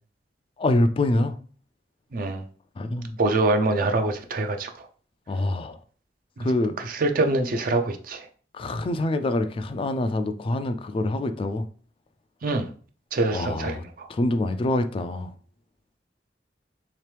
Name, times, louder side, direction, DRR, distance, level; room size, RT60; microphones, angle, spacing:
voice 1, 0.6-1.4 2.8-3.2 5.3-5.8 6.4-6.7 8.5-11.6 13.3-13.8 14.1-15.3, left 1 dB, 30° left, 0.3 m, -25 dB
voice 2, 2.1-2.4 3.2-4.7 6.9-8.3 12.4-12.7 13.1-14.1, right 2 dB, 55° right, 0.5 m, -24 dB
3.6 x 2.9 x 3.3 m
head